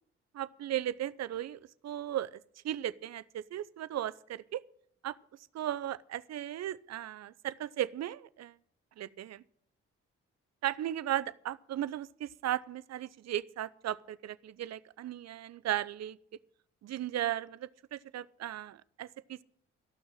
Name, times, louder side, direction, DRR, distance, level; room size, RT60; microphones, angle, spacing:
voice 1, 0.3-2.4 2.6-4.6 5.0-5.2 5.5-8.6 9.0-9.4 10.6-16.2 16.8-19.4, right 12 dB, 60° right, 18 dB, 0.6 m, -36 dB
14.0 x 6.1 x 8.9 m, 0.67 s
hypercardioid pair, 45°, 30 cm